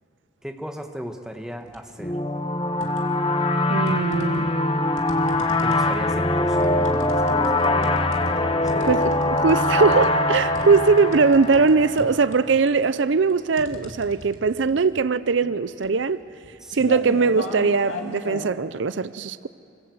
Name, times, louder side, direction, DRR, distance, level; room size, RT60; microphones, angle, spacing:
voice 1, 0.4-2.2 5.6-9.1 10.6-10.8 16.6-17.2, equal, 5° right, 1.3 m, -36 dB
sound 1, 1.6-2.0 2.4-3.3 3.9-18.6, left 1 dB, 85° left, 2.7 m, -39 dB
sound 2, 2.0-12.4, left 1 dB, 25° left, 1.1 m, -22 dB
voice 2, 3.7-4.5 8.9-16.2 16.7-19.5, right 4 dB, 70° right, 0.5 m, -20 dB
25.5 x 25.5 x 7.9 m
head